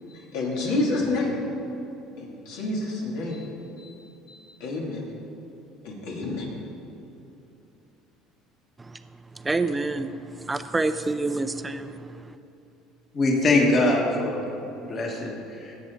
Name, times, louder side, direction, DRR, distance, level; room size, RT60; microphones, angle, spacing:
voice 1, 0.1-1.4 2.2-3.5 3.8-4.0 4.3-5.1 5.8-6.5, left 2 dB, 80° left, -3 dB, 2.7 m, -29 dB
voice 2, 9.4-10.1 10.4-12.0, right 3 dB, 15° right, 10 dB, 0.4 m, -27 dB
voice 3, 13.1-14.5 14.8-15.7, left 2 dB, 35° left, 0 dB, 1.7 m, -23 dB
16.5 x 8.0 x 4.0 m, 2.9 s
cardioid pair, 125°, 0 cm